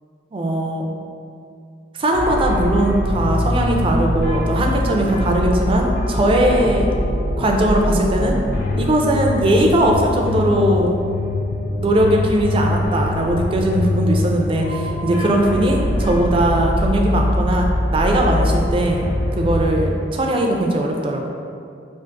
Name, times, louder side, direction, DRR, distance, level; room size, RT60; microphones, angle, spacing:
voice 1, 0.3-0.9 2.0-6.9 7.4-8.4 8.8-11.0 11.8-19.1 19.4-21.3, right 1 dB, 30° right, 1 dB, 0.3 m, -19 dB
sound 1, 2.1-19.8, left 1 dB, 55° left, 0.5 m, -22 dB
4.6 x 2.4 x 2.5 m, 2.4 s
head